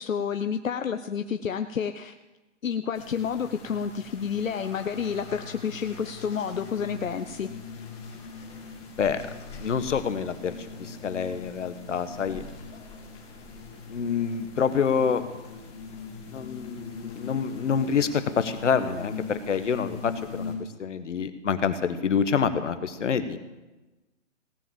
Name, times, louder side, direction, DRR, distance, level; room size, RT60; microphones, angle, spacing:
voice 1, 0.0-2.1 2.6-7.5, left 7 dB, 85° left, 8 dB, 0.8 m, -30 dB
sound 1, 2.9-20.5, left 4 dB, 15° left, 2.4 m, -41 dB
voice 2, 9.6-12.4 13.9-15.2 16.3-20.5 20.8-23.4, left 6 dB, 65° left, 11 dB, 1.4 m, -27 dB
17.5 x 7.4 x 7.5 m, 1.1 s
hypercardioid pair, 150°, 39 cm